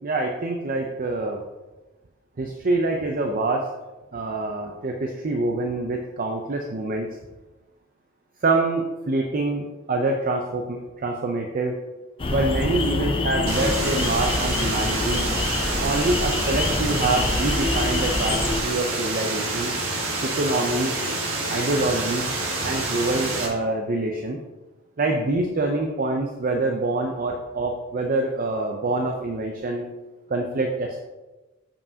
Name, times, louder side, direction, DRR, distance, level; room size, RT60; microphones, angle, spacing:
voice 1, 0.0-1.4 2.4-3.6 4.1-7.1 8.4-11.8 12.3-15.3 15.8-19.7 20.2-20.9 21.5-22.2 22.6-24.4 25.0-29.9 30.3-31.0, right 2 dB, 45° right, 2 dB, 0.5 m, -25 dB
sound 1, 12.2-18.6, left 2 dB, 25° left, 0.5 m, -26 dB
sound 2, 13.5-23.5, right 2 dB, 90° right, 1.4 m, -28 dB
7.2 x 5.5 x 2.7 m, 1.1 s
head